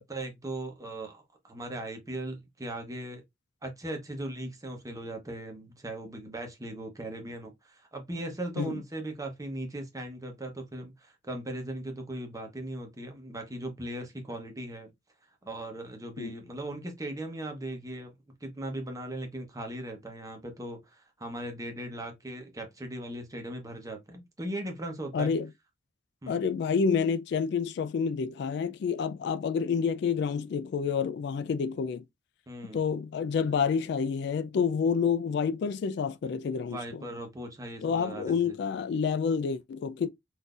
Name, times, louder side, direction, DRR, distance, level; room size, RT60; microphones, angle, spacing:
voice 1, 0.0-3.2 3.6-14.9 15.4-18.1 18.4-25.3 26.2-26.4 32.5-32.8 36.7-38.6, right 1 dB, 20° right, 0.8 m, -38 dB
voice 2, 25.1-25.5 26.3-32.0 32.7-36.8 37.8-40.1, left 6 dB, 65° left, 0.3 m, -28 dB
3.7 x 2.6 x 2.4 m
head